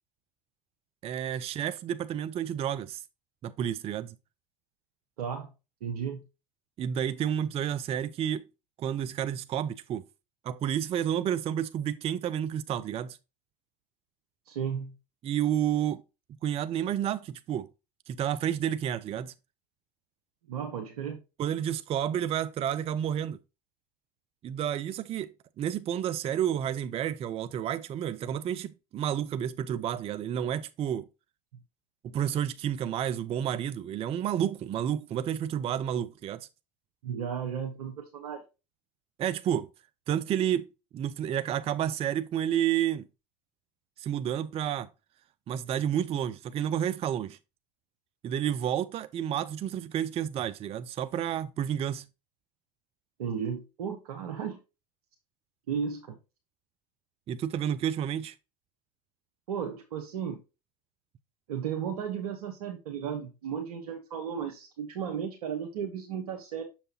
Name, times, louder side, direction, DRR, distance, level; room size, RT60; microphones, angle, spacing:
voice 1, 1.0-3.0 3.4-4.1 6.8-8.4 8.8-10.0 10.4-13.2 15.2-16.0 16.4-17.7 18.1-19.3 21.4-23.4 24.4-31.1 32.0-36.5 39.2-39.7 40.1-43.0 44.0-44.9 45.5-47.4 48.2-52.1 57.3-58.3, right 10 dB, 30° right, 0.4 m, -30 dB
voice 2, 5.2-5.5 5.8-6.2 14.5-14.9 20.5-21.2 37.0-38.4 53.2-54.6 55.7-56.2 59.5-60.4 61.5-66.6, right 7 dB, 75° right, 0.8 m, -34 dB
6.6 x 5.7 x 2.8 m
hypercardioid pair, 85°, 19 cm